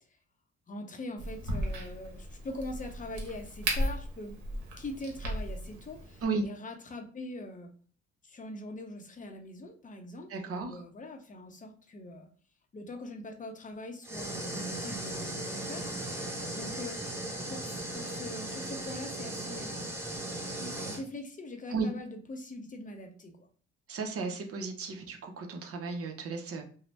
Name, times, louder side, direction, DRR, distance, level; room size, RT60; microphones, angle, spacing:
voice 1, 0.7-4.4 4.8-7.7 8.2-12.3 12.7-16.2 16.5-17.0 17.5-20.0 20.8-23.5, left 1 dB, 25° left, 4 dB, 0.6 m, -42 dB
Crack, 1.2-6.2, right 1 dB, 70° right, 1.0 m, -36 dB
voice 2, 10.3-10.8 20.6-20.8 21.7-21.9 23.9-26.6, right 4 dB, 50° right, 3 dB, 0.7 m, -34 dB
sound 1, 14.0-21.0, right 1 dB, 10° right, 0.8 m, -37 dB
2.6 x 2.0 x 3.1 m, 0.44 s
cardioid pair, 90°, 30 cm